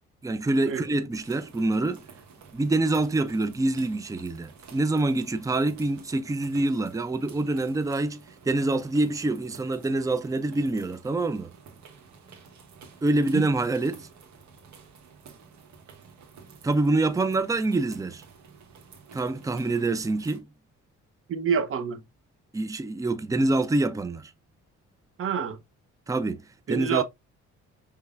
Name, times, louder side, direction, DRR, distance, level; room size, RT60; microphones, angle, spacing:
voice 1, 0.2-2.0 2.5-11.5 13.0-14.1 16.6-18.2 19.1-20.5 22.5-24.3 26.1-26.4 26.7-27.0, right 2 dB, 10° right, 0.5 m, -26 dB
sound 1, 1.1-20.4, right 6 dB, 70° right, 1.5 m, -51 dB
voice 2, 21.3-22.0 25.2-25.6 26.7-27.0, right 7 dB, 45° right, 0.8 m, -27 dB
5.3 x 3.3 x 2.4 m
cardioid pair, 90°, 30 cm